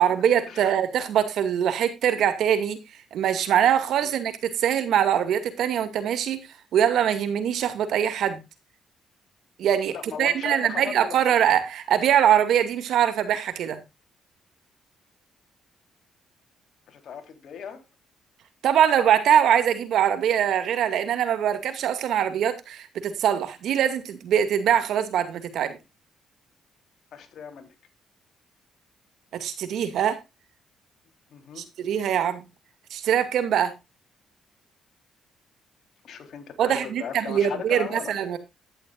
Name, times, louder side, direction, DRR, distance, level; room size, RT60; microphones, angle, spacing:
voice 1, 0.0-2.8 3.1-8.4 9.6-13.8 18.6-25.8 29.3-30.2 31.6-32.4 32.9-33.7 36.6-38.4, right 9 dB, 75° right, 2.3 m, -23 dB
voice 2, 9.9-11.2 16.9-17.8 27.1-27.7 31.3-31.7 36.0-38.1, left 7 dB, 65° left, 3.7 m, -37 dB
12.0 x 11.0 x 2.5 m
cardioid pair, 90°, 0 cm